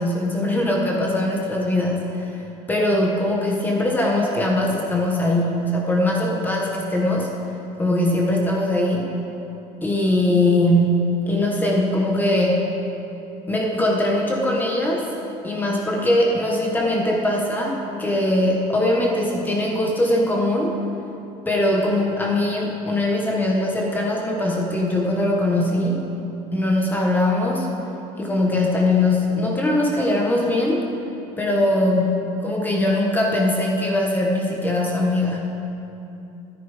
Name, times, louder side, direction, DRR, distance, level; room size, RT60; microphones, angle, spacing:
voice 1, 0.0-2.3 2.7-7.3 7.8-9.1 9.8-12.6 13.5-15.0 15.4-20.7 21.5-26.0 26.5-27.7 28.2-30.8 31.4-35.6, left 1 dB, 15° left, -1 dB, 1.2 m, -21 dB
14.5 x 9.9 x 4.9 m, 2.9 s
cardioid pair, 170°, 14 cm